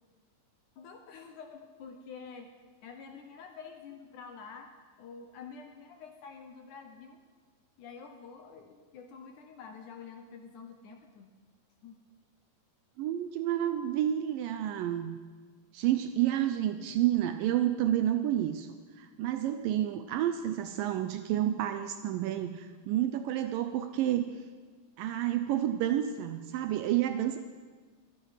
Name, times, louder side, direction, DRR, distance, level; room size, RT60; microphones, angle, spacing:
voice 1, 0.8-2.5 2.8-4.7 5.0-7.2 7.8-11.3 11.8-12.0, left 5 dB, 70° left, 5 dB, 2.0 m, -48 dB
voice 2, 13.0-15.2 15.7-24.4 25.0-27.4, right 12 dB, 80° right, 9 dB, 2.1 m, -30 dB
24.0 x 9.4 x 5.7 m, 1.5 s
omnidirectional pair, 4.4 m